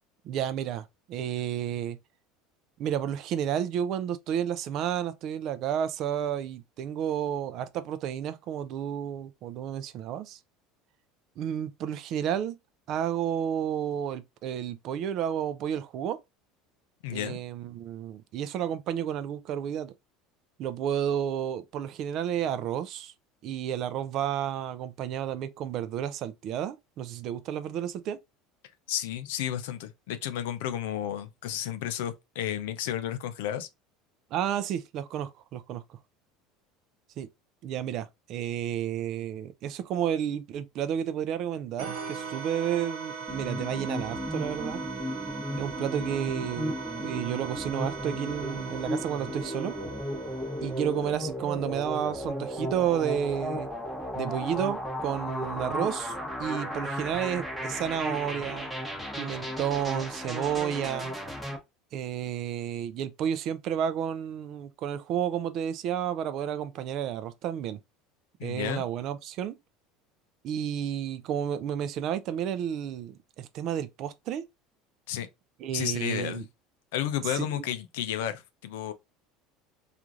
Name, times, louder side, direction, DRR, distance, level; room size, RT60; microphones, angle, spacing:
voice 1, 0.2-2.0 2.8-10.4 11.4-12.6 12.9-16.2 17.1-19.9 20.6-23.1 23.4-28.2 34.3-36.0 37.2-37.3 37.6-44.8 45.6-46.8 47.0-49.7 50.6-53.7 54.1-58.7 59.2-61.2 61.9-67.8 68.4-69.6 70.4-74.5 75.6-76.4 77.3-77.6, right 9 dB, 50° right, 0.3 m, -31 dB
voice 2, 17.0-17.4 28.9-33.7 68.4-68.8 75.1-75.3 75.7-76.4 76.9-78.9, left 11 dB, 85° left, 0.4 m, -32 dB
sound 1, 41.8-51.2, right 6 dB, 85° right, 0.8 m, -39 dB
sound 2, 43.3-61.6, equal, ahead, 0.8 m, -35 dB
3.0 x 2.4 x 2.4 m
supercardioid pair, 125°, 0 cm